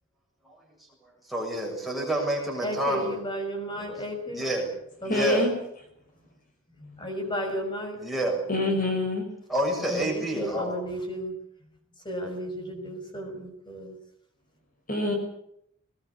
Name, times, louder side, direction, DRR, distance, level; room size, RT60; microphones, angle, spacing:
voice 1, 1.3-3.2 4.3-4.7 5.1-5.4 8.0-8.4 9.5-10.8, equal, ahead, -2 dB, 7.1 m, -28 dB
voice 2, 2.6-4.4 5.0-5.3 6.7-8.0 9.9-11.4 11.6-11.7 12.0-14.0, equal, 20° left, 3 dB, 6.3 m, -34 dB
voice 3, 5.1-5.5 8.5-9.3 14.9-15.1, left 1 dB, 40° left, 3 dB, 5.8 m, -25 dB
21.5 x 20.0 x 8.4 m, 0.72 s
head